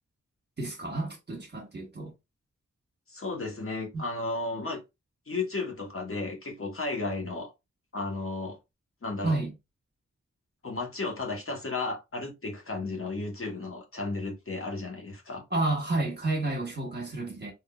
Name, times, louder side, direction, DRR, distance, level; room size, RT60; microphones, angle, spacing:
voice 1, 0.6-2.1 3.9-4.0 9.2-9.5 15.5-17.5, right 2 dB, 35° right, 1.5 m, -30 dB
voice 2, 3.1-4.8 5.3-7.5 7.9-8.6 9.0-9.4 10.6-15.4, left 3 dB, 45° left, 1.2 m, -34 dB
3.7 x 2.8 x 2.4 m
cardioid pair, 40°, 30 cm